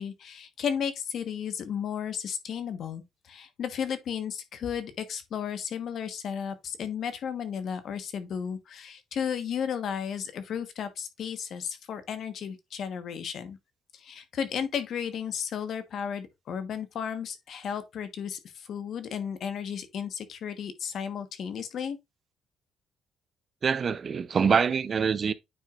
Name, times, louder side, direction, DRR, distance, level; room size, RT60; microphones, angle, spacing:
voice 1, 0.0-13.6 13.9-22.0, left 7 dB, 65° left, 1.2 m, -34 dB
voice 2, 23.6-25.3, right 6 dB, 45° right, 0.6 m, -25 dB
9.1 x 4.6 x 2.5 m
cardioid pair, 90°, 0 cm